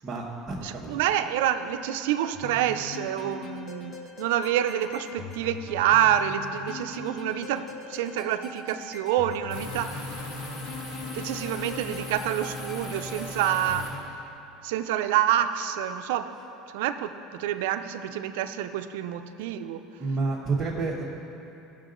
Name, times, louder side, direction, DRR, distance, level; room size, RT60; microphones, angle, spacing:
voice 1, 0.0-0.9 20.0-21.0, right 3 dB, 25° right, -6 dB, 1.1 m, -29 dB
voice 2, 0.6-10.2 11.1-13.9 14.6-16.3 16.7-19.8, right 11 dB, 85° right, 9 dB, 0.5 m, -27 dB
sound 1, 2.3-14.0, left 4 dB, 30° left, 0.7 m, -42 dB
sound 2, 9.5-13.9, left 2 dB, 70° left, 2.3 m, -38 dB
16.0 x 6.6 x 3.8 m, 3.0 s
cardioid pair, 160°, 0 cm